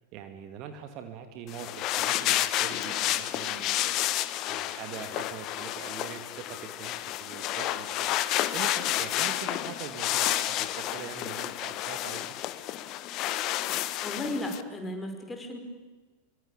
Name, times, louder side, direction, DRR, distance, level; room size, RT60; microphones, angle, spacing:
voice 1, 0.1-4.0 4.5-12.2, right 9 dB, 40° right, 8 dB, 2.5 m, -43 dB
sound 1, 1.5-14.6, left 14 dB, 40° left, 1.3 m, -30 dB
voice 2, 14.0-15.6, left 1 dB, 10° left, 4 dB, 5.6 m, -34 dB
25.0 x 24.0 x 8.8 m, 1.3 s
figure-of-eight pair, 90°, 0 cm